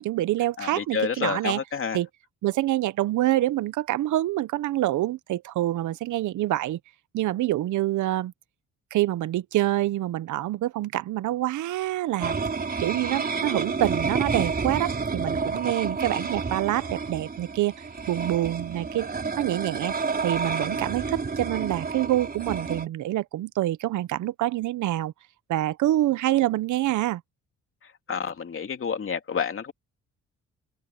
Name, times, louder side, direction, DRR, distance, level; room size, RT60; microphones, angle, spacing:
voice 1, 0.0-1.6 1.9-2.1 2.4-6.8 7.1-8.3 8.9-12.4 12.8-17.7 18.1-19.1 19.4-19.9 20.2-25.1 25.5-27.2, right 14 dB, 75° right, 0.9 m, -26 dB
voice 2, 0.6-2.0 28.1-29.7, left 6 dB, 45° left, 3.0 m, -29 dB
sound 1, 12.2-22.9, right 4 dB, 30° right, 5.2 m, -30 dB
open air
cardioid pair, 90°, 30 cm